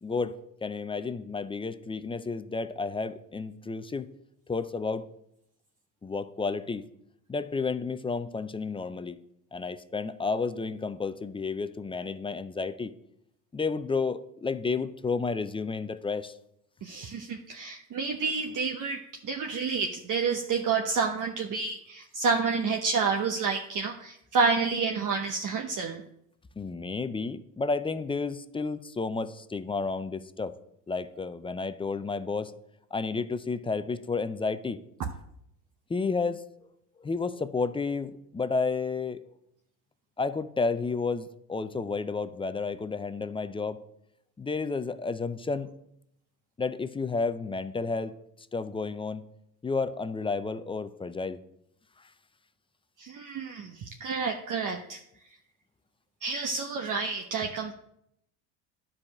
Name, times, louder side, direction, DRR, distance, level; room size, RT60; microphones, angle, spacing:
voice 1, 0.0-4.1 4.5-5.0 6.0-6.9 7.3-9.2 9.5-12.9 13.5-16.3 26.6-30.6 30.9-32.5 32.9-34.8 35.9-36.4 37.0-39.2 40.2-43.8 44.4-45.7 46.6-48.1 48.5-49.3 49.6-51.4, left 4 dB, 10° left, 12 dB, 0.4 m, -31 dB
voice 2, 16.8-26.0 35.0-35.1 53.0-55.0 56.2-57.7, right 4 dB, 45° right, 3 dB, 1.0 m, -29 dB
10.5 x 5.0 x 7.3 m, 0.77 s
supercardioid pair, 85°, 45 cm